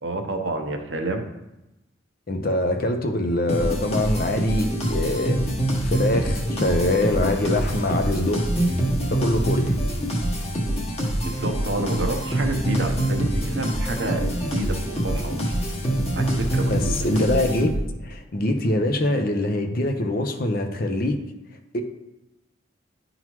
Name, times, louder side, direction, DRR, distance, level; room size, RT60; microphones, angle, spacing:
voice 1, 0.0-1.2 11.2-15.7 16.1-17.2, right 2 dB, 65° right, 4 dB, 0.8 m, -29 dB
voice 2, 2.3-5.4 5.8-8.5 9.1-9.7 16.7-17.7 18.0-21.2 21.7-21.8, left 1 dB, 50° left, 5 dB, 0.7 m, -24 dB
sound 1, 3.5-18.1, right 1 dB, 35° left, 1.2 m, -25 dB
10.5 x 3.9 x 3.0 m, 0.94 s
head